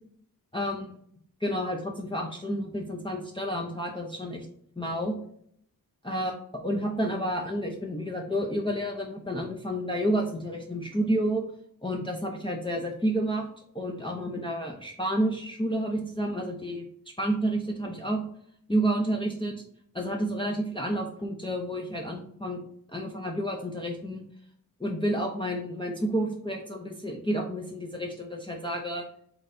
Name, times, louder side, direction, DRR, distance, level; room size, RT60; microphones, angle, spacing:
voice 1, 0.5-1.0 1.4-4.5 4.8-5.1 6.0-11.4 11.8-13.4 13.7-16.9 17.2-18.2 18.7-19.5 19.9-22.6 22.9-24.2 24.8-29.0, right 1 dB, 15° left, 0 dB, 0.6 m, -30 dB
4.0 x 3.3 x 3.8 m, 0.67 s
wide cardioid pair, 70°, 35 cm